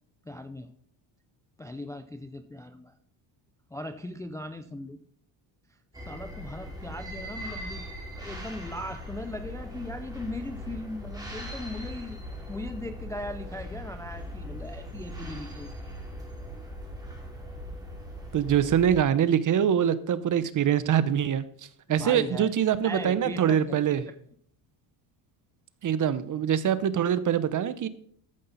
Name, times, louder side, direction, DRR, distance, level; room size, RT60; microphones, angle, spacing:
voice 1, 0.3-0.7 1.6-2.9 3.7-5.0 6.0-7.8 8.2-12.2 12.5-15.7 21.9-22.5 22.8-24.0, left 1 dB, 5° left, 8 dB, 0.3 m, -38 dB
sound 1, 5.9-19.0, equal, 10° right, 2.6 m, -40 dB
voice 2, 18.3-21.4 21.9-24.0 25.8-27.9, right 9 dB, 40° right, 15 dB, 0.7 m, -24 dB
14.0 x 5.5 x 4.0 m, 0.62 s
cardioid pair, 105°, 49 cm